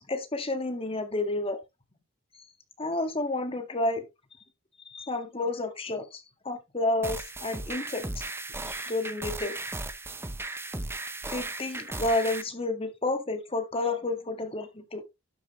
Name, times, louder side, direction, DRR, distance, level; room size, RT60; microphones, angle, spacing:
voice 1, 0.1-1.6 2.8-4.0 4.9-8.2 8.7-9.6 11.3-15.0, left 2 dB, 30° left, 1.8 m, -30 dB
sound 1, 7.0-12.4, right 2 dB, 10° right, 0.9 m, -36 dB
12.0 x 7.4 x 3.2 m
head